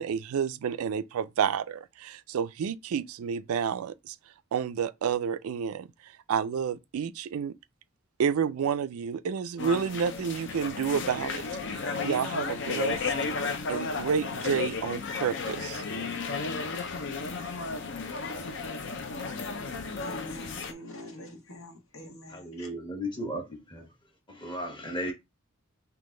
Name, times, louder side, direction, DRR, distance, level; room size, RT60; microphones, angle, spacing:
voice 1, 0.0-4.2 4.5-5.9 6.3-7.5 8.2-11.4 11.7-13.0 13.7-15.8, right 7 dB, 85° right, 0.4 m, -30 dB
sound 1, 9.6-20.7, left 4 dB, 55° left, 0.6 m, -33 dB
voice 2, 20.0-22.7, left 1 dB, 80° left, 1.5 m, -45 dB
voice 3, 22.3-23.9 24.3-25.1, equal, 20° left, 1.1 m, -35 dB
3.7 x 2.9 x 3.6 m
head